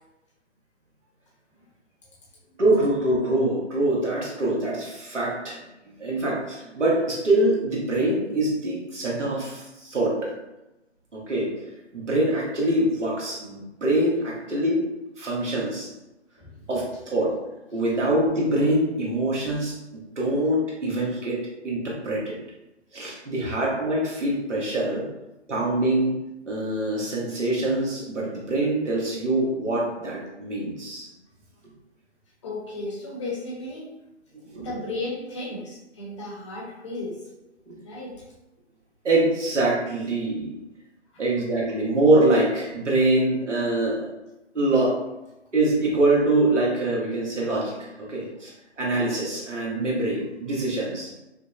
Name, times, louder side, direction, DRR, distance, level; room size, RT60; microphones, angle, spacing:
voice 1, 2.6-5.6 6.0-10.3 11.1-11.5 11.9-14.8 15.2-15.9 16.7-17.3 17.7-19.8 20.2-22.4 22.9-25.1 25.5-26.1 26.5-31.1 34.5-34.8 39.0-40.5 41.2-44.1 44.5-45.0 45.5-51.1, right 1 dB, 85° right, -4 dB, 1.3 m, -24 dB
voice 2, 32.4-33.9 34.6-37.2 37.8-38.1 41.1-41.2, left 2 dB, 25° left, -4 dB, 0.8 m, -34 dB
5.0 x 2.1 x 2.4 m, 0.95 s
figure-of-eight pair, 145°, 35 cm